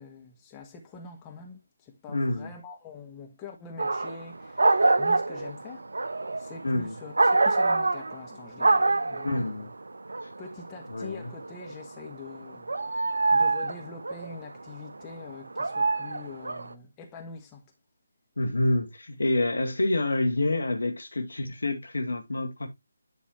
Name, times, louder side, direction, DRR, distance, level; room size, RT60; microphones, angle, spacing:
voice 1, 0.0-9.7 10.4-12.7 13.0-17.6, left 4 dB, 15° left, 1.3 m, -44 dB
voice 2, 2.1-2.5 6.6-6.9 9.2-9.7 10.9-11.3 18.4-22.7, left 2 dB, 70° left, 1.8 m, -27 dB
sound 1, 3.8-4.2 4.6-8.3 8.6-9.5 9.9-11.9 12.3-14.3 15.2-16.7, right 3 dB, 65° right, 0.6 m, -25 dB
11.0 x 4.0 x 3.1 m
figure-of-eight pair, 155°, 0 cm